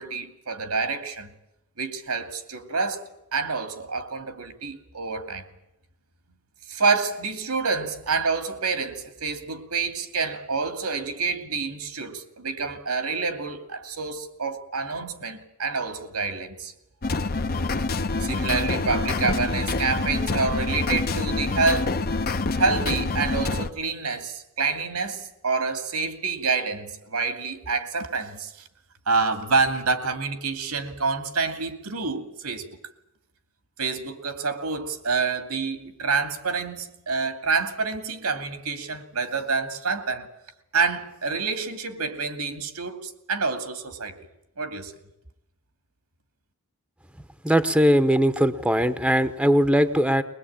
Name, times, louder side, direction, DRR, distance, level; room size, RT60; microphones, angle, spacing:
voice 1, 0.0-1.3 1.8-5.4 6.7-16.7 18.2-22.0 22.6-28.5 29.1-32.7 33.8-40.3 40.7-44.2 44.6-44.9, right 4 dB, 90° right, 2.5 m, -27 dB
sound 1, 17.0-23.7, left 3 dB, 45° left, 0.8 m, -26 dB
voice 2, 47.4-50.2, equal, 5° right, 0.8 m, -20 dB
21.5 x 21.0 x 8.8 m
head